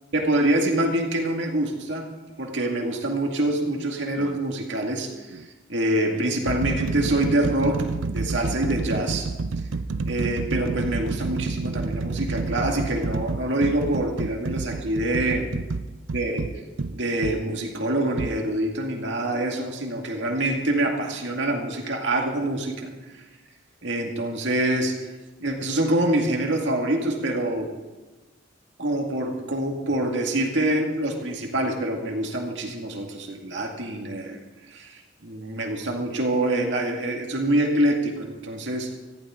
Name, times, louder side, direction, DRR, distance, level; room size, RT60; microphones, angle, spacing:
voice 1, 0.1-2.1 2.4-9.3 10.1-15.5 16.1-16.5 16.9-23.2 23.8-25.0 25.4-27.7 28.8-34.4 34.7-39.0, right 1 dB, 70° right, 1 dB, 2.2 m, -25 dB
sound 1, 4.2-4.4 5.3-5.5 6.1-17.4 18.2-18.4, right 3 dB, 90° right, 0.6 m, -29 dB
18.0 x 15.0 x 3.8 m, 1.2 s
head